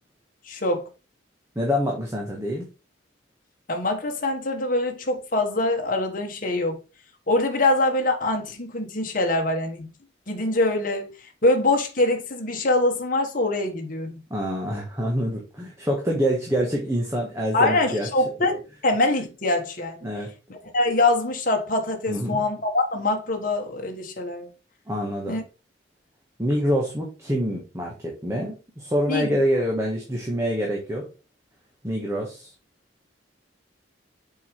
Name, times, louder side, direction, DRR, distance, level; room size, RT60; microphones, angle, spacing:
voice 1, 0.5-0.9 3.7-6.8 7.3-9.9 10.3-11.1 11.4-14.2 17.5-20.1 20.5-24.5 25.3-25.4 29.1-29.4, left 2 dB, 45° left, 1.3 m, -24 dB
voice 2, 1.5-2.7 14.3-18.1 20.0-20.3 22.1-22.4 24.9-25.4 26.4-31.1 31.8-32.5, equal, 15° right, 1.3 m, -26 dB
6.8 x 4.8 x 3.2 m
head